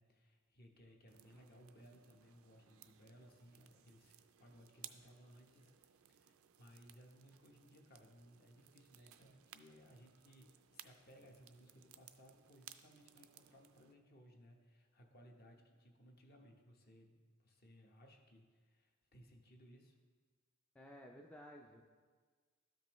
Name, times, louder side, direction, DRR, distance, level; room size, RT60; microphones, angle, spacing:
voice 1, 0.0-20.0, equal, 45° left, 2 dB, 1.0 m, -63 dB
sound 1, 1.1-13.9, right 11 dB, 75° right, 0.4 m, -62 dB
voice 2, 20.7-21.8, equal, 5° left, 0 dB, 0.3 m, -55 dB
12.5 x 5.3 x 3.0 m, 1.5 s
head